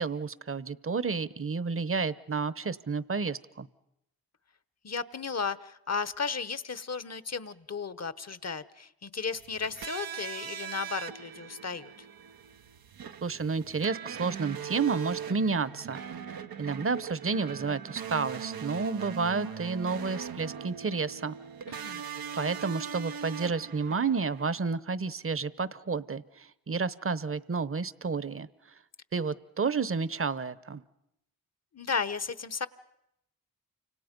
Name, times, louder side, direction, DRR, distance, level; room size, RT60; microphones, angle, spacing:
voice 1, 0.0-3.7 13.2-16.0 16.6-21.3 21.7-21.9 22.3-28.5 29.1-30.8, right 4 dB, 40° right, 17 dB, 0.9 m, -31 dB
voice 2, 4.8-11.9 21.7-22.0 31.7-32.7, left 5 dB, 45° left, 15 dB, 1.0 m, -34 dB
sound 1, 9.4-24.6, right 7 dB, 85° right, 0.9 m, -40 dB
29.5 x 26.0 x 5.3 m, 0.82 s
cardioid pair, 50°, 35 cm